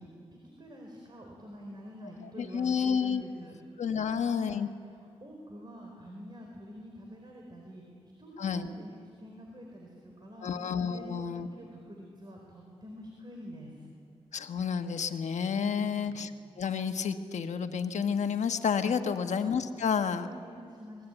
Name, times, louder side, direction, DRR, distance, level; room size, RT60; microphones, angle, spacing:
voice 1, 0.0-3.5 4.0-4.6 5.0-7.8 8.2-10.5 10.9-13.9 15.7-16.2 19.0-19.4 20.0-21.1, equal, 40° right, 0 dB, 4.3 m, -47 dB
voice 2, 2.2-3.2 3.8-4.7 8.4-8.7 10.4-11.5 14.3-16.3 16.6-20.3, left 6 dB, 85° left, 7 dB, 1.2 m, -30 dB
26.0 x 20.0 x 9.1 m, 2.4 s
wide cardioid pair, 90°, 12 cm